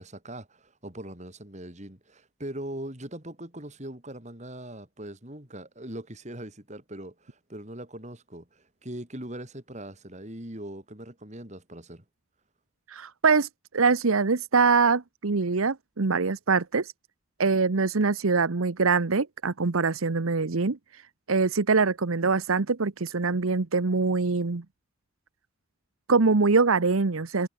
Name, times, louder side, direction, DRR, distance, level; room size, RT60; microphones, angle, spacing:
voice 1, 0.0-12.0, right 1 dB, 35° right, 3.8 m, -41 dB
voice 2, 12.9-13.5 13.7-16.9 17.4-20.8 21.3-24.6 26.1-27.5, right 4 dB, 90° right, 0.9 m, -23 dB
head